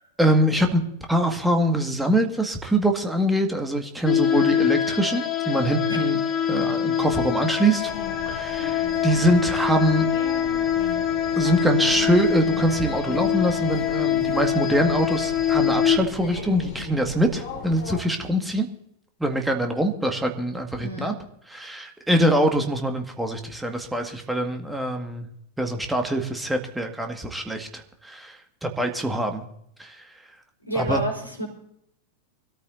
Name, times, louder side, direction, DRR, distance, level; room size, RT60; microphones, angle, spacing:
voice 1, 0.2-0.8 1.1-6.2 6.5-7.9 8.3-10.1 11.4-18.7 19.2-21.1 21.5-25.3 25.6-29.4 29.8-30.0 30.8-31.0, right 1 dB, 5° right, 4 dB, 1.9 m, -24 dB
sound 1, 4.1-16.0, left 9 dB, 25° left, 1.1 m, -24 dB
sound 2, 7.8-18.0, left 5 dB, 45° left, 6.5 m, -38 dB
voice 2, 20.8-21.1 30.7-31.5, equal, 90° left, -1 dB, 4.4 m, -29 dB
24.0 x 13.5 x 2.7 m, 0.75 s
figure-of-eight pair, 90°, 0 cm